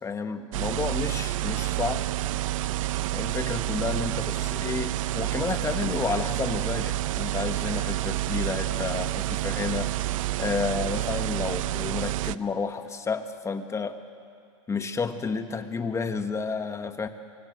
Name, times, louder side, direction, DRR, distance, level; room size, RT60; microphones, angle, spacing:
voice 1, 0.0-2.0 3.1-9.9 10.4-14.0 14.7-17.1, left 5 dB, 15° left, 8 dB, 1.5 m, -31 dB
sound 1, 0.5-12.3, right 16 dB, 70° right, 0.7 m, -29 dB
25.0 x 24.5 x 7.9 m, 2.4 s
hypercardioid pair, 120°, 17 cm